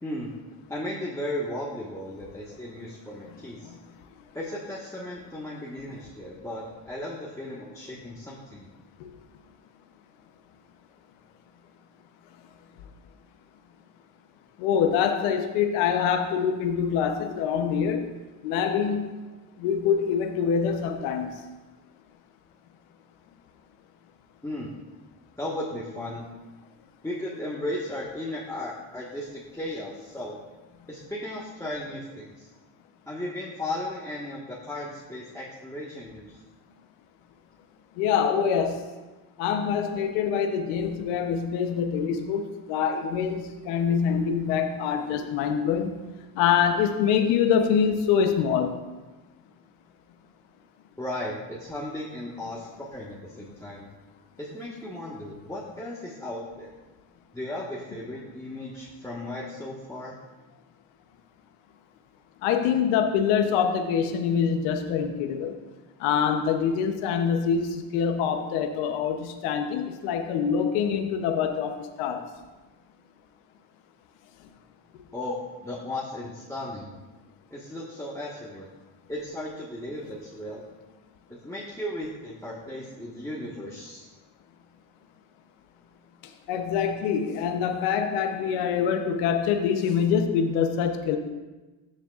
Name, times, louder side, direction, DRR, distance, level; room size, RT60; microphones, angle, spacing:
voice 1, 0.7-3.7 4.3-8.7 24.4-24.7 25.4-26.3 27.0-30.4 30.9-32.5 33.1-36.4 51.0-53.9 54.4-56.7 57.3-60.1 75.1-76.9 77.5-78.7 79.1-80.6 81.3-84.1, left 1 dB, 5° left, -4 dB, 1.5 m, -35 dB
voice 2, 14.6-18.0 18.4-19.0 19.6-21.3 38.0-38.9 39.4-42.4 42.7-45.9 46.4-48.8 62.4-65.5 66.0-72.2 86.5-91.2, left 7 dB, 90° left, 4 dB, 0.9 m, -25 dB
14.5 x 6.6 x 2.5 m, 1.2 s
supercardioid pair, 75°, 50 cm